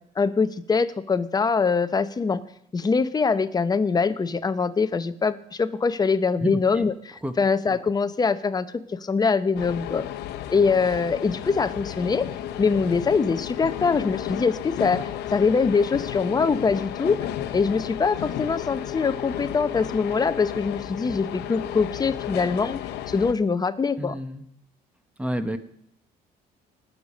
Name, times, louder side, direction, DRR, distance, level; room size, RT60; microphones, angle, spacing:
voice 1, 0.2-2.4 2.7-10.0 10.5-12.3 12.6-17.2 17.5-22.8 23.1-24.2, left 5 dB, 25° left, 12 dB, 0.7 m, -23 dB
sound 1, 9.5-23.3, left 11 dB, 80° left, 0.8 m, -33 dB
voice 2, 24.0-24.4 25.2-25.6, right 1 dB, 5° right, 10 dB, 1.1 m, -29 dB
19.0 x 6.7 x 5.2 m, 0.74 s
cardioid pair, 110°, 17 cm